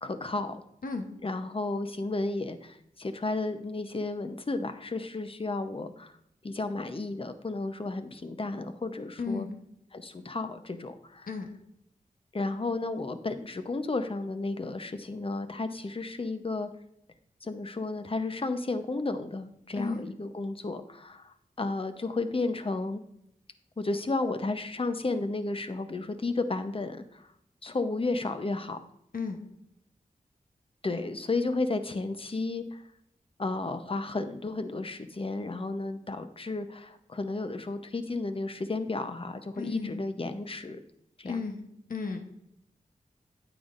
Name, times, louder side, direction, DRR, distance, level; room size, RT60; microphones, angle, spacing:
voice 1, 0.0-0.6 1.2-6.1 6.4-9.5 9.9-11.3 12.3-16.7 17.4-23.0 23.8-27.3 27.6-28.8 30.8-32.8 33.4-40.8 41.2-41.4, left 3 dB, 40° left, 9 dB, 0.8 m, -33 dB
voice 2, 9.2-9.5 11.3-11.5 19.7-20.1 29.1-29.4 39.5-40.0 41.2-42.2, left 4 dB, 70° left, 4 dB, 1.1 m, -34 dB
9.2 x 9.0 x 2.6 m, 0.77 s
cardioid pair, 50°, 15 cm